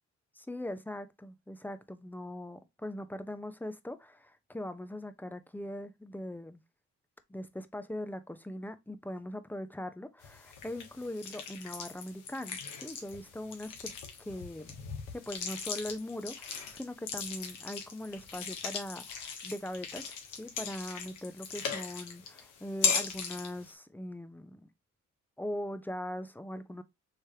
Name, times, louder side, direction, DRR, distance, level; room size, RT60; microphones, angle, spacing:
voice 1, 0.4-6.6 7.3-13.9 14.2-14.8 15.1-24.7 25.4-26.8, left 1 dB, 5° left, 0.7 m, -41 dB
sound 1, 10.2-23.7, left 6 dB, 85° left, 1.4 m, -38 dB
4.9 x 3.3 x 2.8 m
cardioid pair, 90°, 30 cm